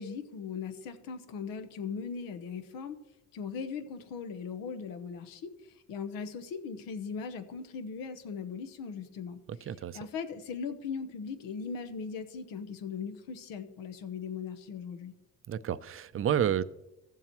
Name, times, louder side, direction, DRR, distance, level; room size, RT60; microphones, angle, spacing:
voice 1, 0.0-3.0 3.3-15.1, left 6 dB, 85° left, 1.0 m, -39 dB
voice 2, 9.7-10.0 15.5-16.6, right 9 dB, 40° right, 0.5 m, -30 dB
15.5 x 7.3 x 3.0 m
supercardioid pair, 75°, 34 cm